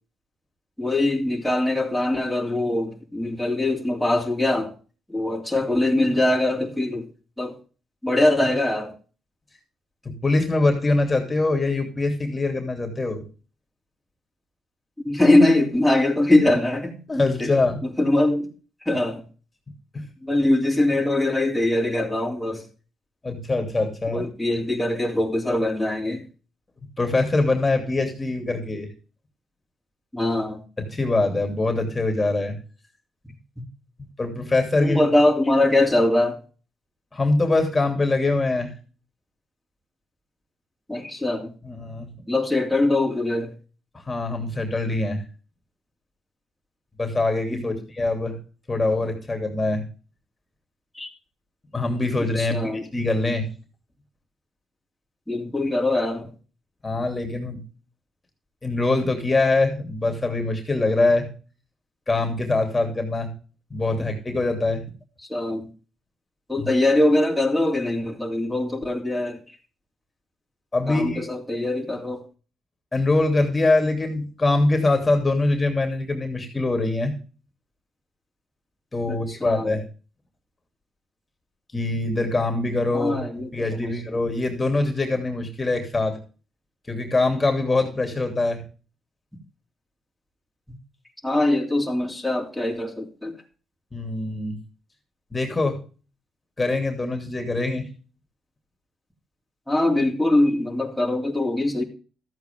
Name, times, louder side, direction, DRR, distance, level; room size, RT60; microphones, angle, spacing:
voice 1, 0.8-4.7 5.1-7.1 7.4-7.6 8.0-8.9 15.0-17.0 17.4-17.6 18.0-18.5 18.8-19.2 20.2-22.6 24.1-26.2 30.1-30.6 34.8-36.4 40.9-41.5 42.3-43.5 47.5-47.8 50.9-51.1 52.4-52.8 55.3-56.2 65.3-65.7 66.5-69.4 70.9-72.2 79.1-79.7 82.9-84.0 91.2-93.3 99.7-101.8, left 1 dB, ahead, 3.0 m, -22 dB
voice 2, 10.0-13.2 17.1-17.8 19.9-20.0 23.2-24.3 27.0-28.9 30.8-32.6 34.2-35.0 37.1-38.7 41.6-42.1 44.1-45.2 47.0-48.4 48.7-49.8 51.7-52.6 52.9-53.5 56.8-57.6 58.6-61.3 62.1-63.3 63.7-64.9 66.6-66.7 70.7-71.2 72.9-77.2 78.9-79.8 81.7-83.2 83.5-86.2 86.9-88.6 93.9-94.6 95.3-95.8 96.6-97.9, left 2 dB, 20° left, 2.9 m, -23 dB
14.0 x 8.3 x 3.5 m
cardioid pair, 90°, 0 cm